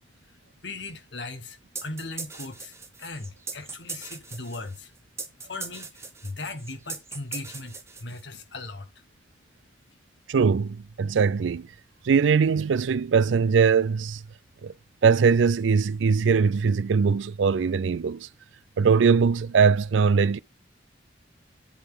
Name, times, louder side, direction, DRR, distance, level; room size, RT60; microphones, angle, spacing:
voice 1, 0.6-4.9 5.5-8.9, left 2 dB, 75° left, 1.6 m, -38 dB
sound 1, 1.7-8.4, right 4 dB, 15° right, 1.0 m, -39 dB
voice 2, 10.3-11.7 12.0-14.2 14.6-14.7 15.0-18.3 18.8-20.4, right 5 dB, 85° right, 0.4 m, -21 dB
8.0 x 4.0 x 6.6 m
head